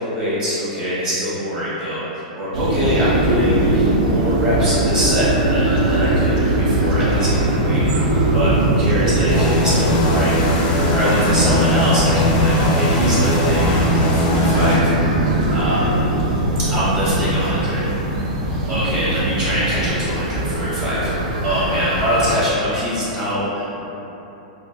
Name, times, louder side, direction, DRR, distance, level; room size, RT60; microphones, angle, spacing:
voice 1, 0.0-7.8 8.3-10.4 10.9-14.9 15.5-15.9 16.6-17.8 18.7-21.1 21.4-23.8, equal, 30° right, -11 dB, 1.1 m, -23 dB
sound 1, 2.5-22.4, right 1 dB, 70° right, 0.4 m, -20 dB
sound 2, 9.3-14.8, left 2 dB, 40° left, 0.4 m, -21 dB
3.2 x 2.4 x 2.2 m, 3.0 s
hypercardioid pair, 130°, 4 cm